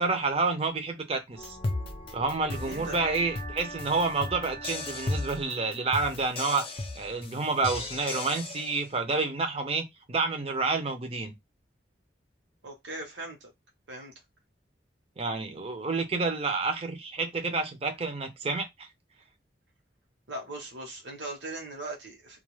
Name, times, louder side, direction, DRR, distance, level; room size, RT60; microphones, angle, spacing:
voice 1, 0.0-1.6 2.1-6.6 7.0-11.3 15.2-18.9, right 3 dB, 35° right, 0.6 m, -29 dB
sound 1, 1.4-8.8, left 2 dB, 30° left, 0.4 m, -36 dB
voice 2, 2.6-3.0 12.6-13.5 13.9-14.1 20.3-22.4, right 2 dB, 75° right, 1.0 m, -39 dB
2.3 x 2.3 x 3.1 m
head